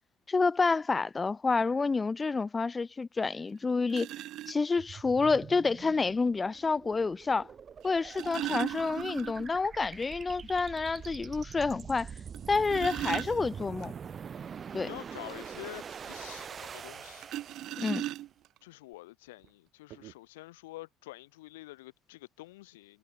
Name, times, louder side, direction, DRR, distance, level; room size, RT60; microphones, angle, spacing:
voice 1, 0.3-4.1 4.5-7.5 7.8-12.1 12.5-13.9 14.7-14.9 17.8-18.0, left 4 dB, 25° left, 0.3 m, -29 dB
sound 1, 3.2-3.3 3.9-4.5 5.9-6.0 7.8-9.6 9.9-10.0 10.4-10.5 11.0-11.1 12.3-13.9 17.2-18.6 19.4-19.5 19.9-20.1, right 15 dB, 60° right, 1.3 m, -37 dB
sound 2, 4.8-18.2, right 7 dB, 40° right, 6.1 m, -44 dB
voice 2, 14.8-17.3 18.6-23.0, left 19 dB, 85° left, 6.9 m, -47 dB
hypercardioid pair, 75°, 0 cm